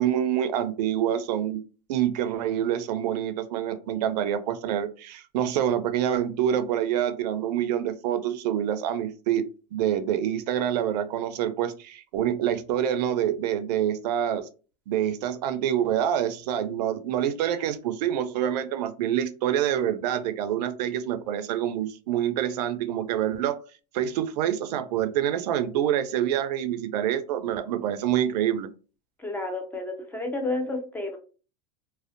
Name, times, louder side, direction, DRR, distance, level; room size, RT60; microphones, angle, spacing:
voice 1, 0.0-1.6 1.9-9.4 9.7-14.4 14.9-23.6 23.9-28.7, right 10 dB, 75° right, 11 dB, 0.4 m, -26 dB
voice 2, 29.2-31.2, left 2 dB, 10° left, 3 dB, 0.4 m, -31 dB
2.5 x 2.0 x 2.5 m, 0.35 s
supercardioid pair, 140°, 21 cm